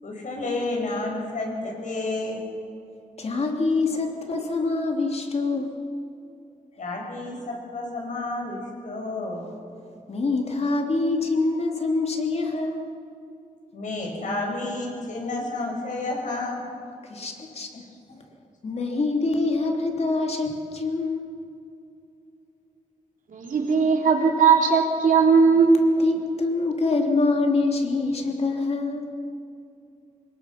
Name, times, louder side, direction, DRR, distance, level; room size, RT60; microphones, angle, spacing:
voice 1, 0.0-2.4 6.8-9.5 13.7-16.7, left 2 dB, 65° left, 0 dB, 6.3 m, -30 dB
voice 2, 3.2-5.7 10.1-12.9 17.1-17.7 18.6-21.3 26.0-29.1, left 3 dB, 50° left, 2 dB, 3.1 m, -25 dB
voice 3, 23.3-25.7, right 5 dB, 70° right, 1 dB, 3.4 m, -18 dB
25.5 x 21.0 x 5.9 m, 2.6 s
wide cardioid pair, 130°, 14 cm